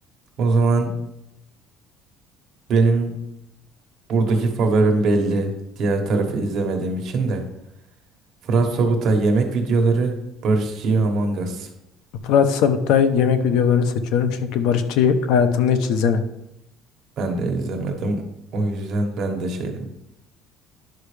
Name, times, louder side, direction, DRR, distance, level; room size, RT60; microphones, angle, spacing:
voice 1, 0.4-0.9 2.7-3.2 4.1-7.4 8.4-10.2 10.4-11.7 17.2-18.2 18.5-19.9, right 3 dB, 50° right, 3 dB, 1.4 m, -21 dB
voice 2, 12.2-16.2, left 7 dB, 75° left, 10 dB, 0.7 m, -19 dB
10.5 x 5.8 x 3.3 m, 0.85 s
cardioid pair, 150°, 0 cm